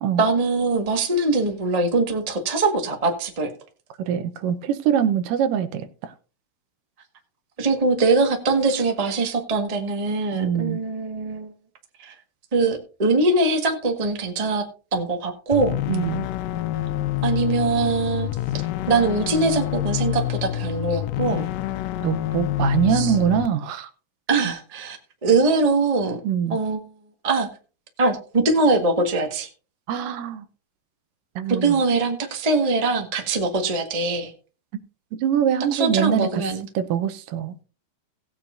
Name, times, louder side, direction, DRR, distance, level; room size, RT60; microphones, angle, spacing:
voice 1, 0.2-3.5 7.6-11.5 12.0-12.1 12.5-14.6 14.9-15.8 17.2-18.3 18.9-21.5 22.9-23.1 24.3-25.0 25.2-26.2 26.5-26.8 27.2-27.5 28.0-29.5 31.5-34.3 35.7-36.6, right 3 dB, 65° right, 0.3 m, -22 dB
voice 2, 4.0-6.1 10.3-10.8 15.9-16.3 22.0-23.9 26.2-26.6 29.9-30.4 31.4-31.8 35.1-36.4 36.7-37.6, right 9 dB, 85° right, 2.5 m, -23 dB
sound 1, 15.5-23.5, left 14 dB, 80° left, 2.1 m, -27 dB
17.5 x 8.7 x 2.6 m
omnidirectional pair, 3.8 m